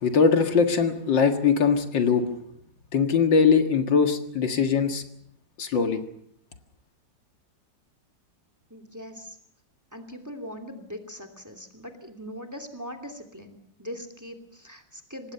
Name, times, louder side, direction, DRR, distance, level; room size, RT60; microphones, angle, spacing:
voice 1, 0.0-2.3 2.9-5.0 5.6-6.0, left 6 dB, 75° left, 7 dB, 2.5 m, -21 dB
voice 2, 8.7-9.4 9.9-15.3, equal, 10° right, 8 dB, 2.7 m, -41 dB
26.0 x 19.5 x 6.9 m, 0.70 s
omnidirectional pair, 2.0 m